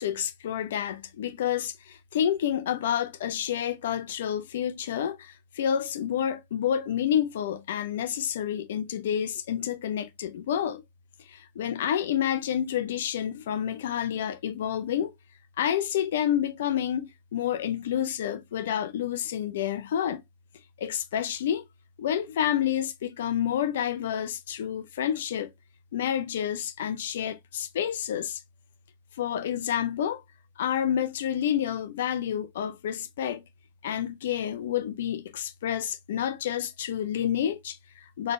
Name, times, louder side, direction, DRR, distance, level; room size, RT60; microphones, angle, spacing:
voice 1, 0.0-10.8 11.2-15.2 15.6-20.2 20.8-21.7 22.0-25.5 25.9-28.4 29.1-30.2 30.6-33.4 33.8-38.3, left 9 dB, 60° left, 0.5 m, -29 dB
3.9 x 3.2 x 2.6 m
figure-of-eight pair, 90°, 0 cm